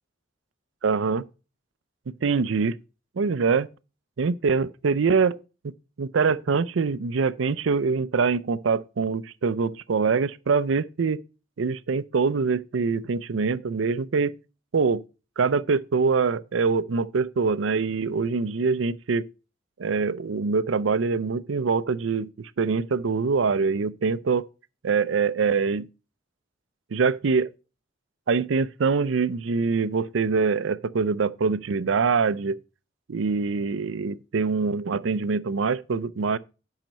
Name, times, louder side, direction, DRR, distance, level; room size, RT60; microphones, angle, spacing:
voice 1, 0.8-1.2 2.2-2.8 3.2-3.7 4.2-5.4 5.6-5.7 6.0-11.2 11.6-14.3 14.7-15.0 15.4-19.3 19.8-24.5 24.8-25.9 26.9-27.5 28.3-32.6 33.1-36.4, right 5 dB, 85° right, 0.5 m, -24 dB
9.1 x 5.7 x 5.2 m
head